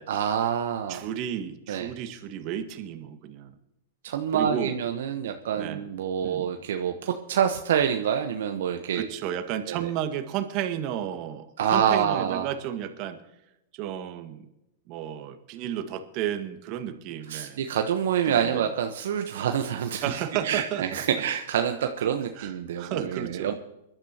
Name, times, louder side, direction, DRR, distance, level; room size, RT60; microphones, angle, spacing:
voice 1, 0.1-1.0 1.7-1.9 4.0-9.1 9.7-9.9 11.6-12.5 17.3-23.5, right 8 dB, 70° right, 5 dB, 1.0 m, -27 dB
voice 2, 0.9-3.5 4.3-4.8 5.6-5.8 6.2-6.5 8.9-13.2 13.7-14.5 14.9-17.6 18.3-18.7 20.0-20.8 22.4-23.5, right 10 dB, 45° right, 7 dB, 1.7 m, -32 dB
23.5 x 12.0 x 2.9 m, 0.89 s
hypercardioid pair, 110°, 0 cm